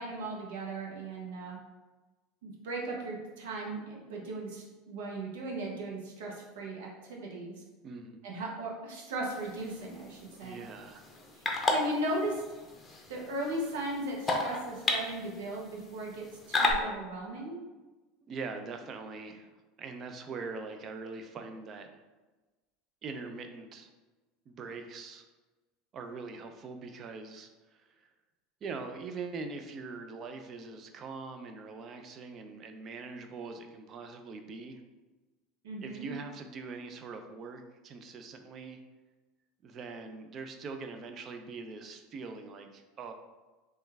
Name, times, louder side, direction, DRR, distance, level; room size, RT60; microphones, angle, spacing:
voice 1, 0.0-1.6 2.4-7.5 8.2-10.6 11.4-11.5 11.7-12.4 13.1-17.6 35.6-36.1, right 1 dB, 75° right, -2 dB, 0.7 m, -37 dB
voice 2, 7.8-8.2 10.4-11.0 18.2-21.9 23.0-23.9 24.5-25.2 25.9-28.1 28.6-34.8 35.8-38.8 39.6-43.1, right 4 dB, 40° right, 6 dB, 0.4 m, -42 dB
sound 1, 9.3-16.7, left 3 dB, 25° left, 0.6 m, -34 dB
3.1 x 2.3 x 3.3 m, 1.2 s
hypercardioid pair, 85°, 0 cm